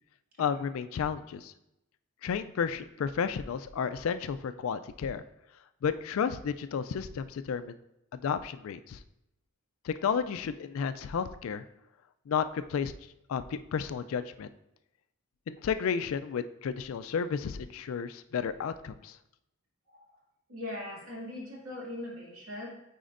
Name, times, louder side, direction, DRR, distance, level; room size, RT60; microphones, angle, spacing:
voice 1, 0.4-1.5 2.2-5.2 5.8-7.8 8.1-9.0 9.8-11.6 12.3-12.9 13.3-14.5 15.5-19.2, left 6 dB, 70° left, 11 dB, 0.3 m, -32 dB
voice 2, 20.5-22.7, left 1 dB, 75° right, -4 dB, 2.1 m, -40 dB
9.1 x 4.3 x 2.5 m, 0.86 s
head